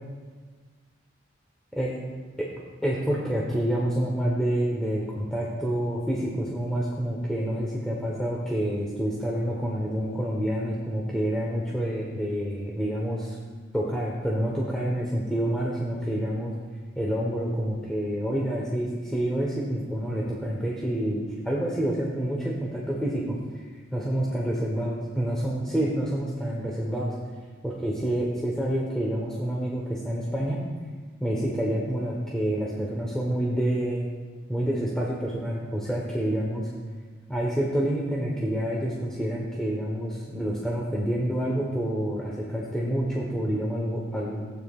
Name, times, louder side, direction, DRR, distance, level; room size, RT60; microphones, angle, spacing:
voice 1, 2.8-13.4 13.7-16.5 16.9-23.4 23.9-27.1 27.6-30.6 31.2-34.1 34.5-36.7 37.3-44.4, right 1 dB, 5° left, -5 dB, 1.1 m, -28 dB
15.5 x 8.9 x 2.5 m, 1.4 s
head